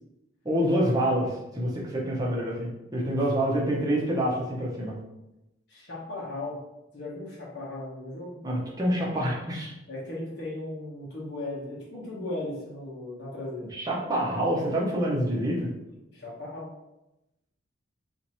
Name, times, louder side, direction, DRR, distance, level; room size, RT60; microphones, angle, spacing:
voice 1, 0.4-4.9 8.4-9.7 13.7-15.7, equal, 20° right, -4 dB, 0.8 m, -27 dB
voice 2, 5.7-6.6 6.9-8.4 9.9-13.7 16.1-16.7, left 2 dB, 55° left, -5 dB, 1.1 m, -37 dB
2.8 x 2.6 x 4.2 m, 0.92 s
head